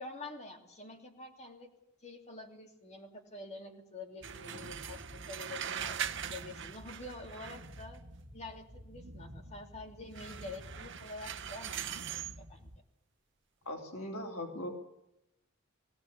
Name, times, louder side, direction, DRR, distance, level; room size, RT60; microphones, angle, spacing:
voice 1, 0.0-1.7 2.0-5.0 5.3-5.9 6.3-8.0 8.3-12.7, left 2 dB, 35° left, 3 dB, 2.9 m, -47 dB
sound 1, 4.2-8.0 10.1-12.4, right 8 dB, 60° right, 0.9 m, -41 dB
sound 2, 4.2-12.8, equal, 90° right, 1.9 m, -52 dB
voice 2, 13.7-14.7, left 1 dB, 85° left, 1 dB, 3.6 m, -39 dB
18.5 x 18.5 x 8.4 m, 0.85 s
head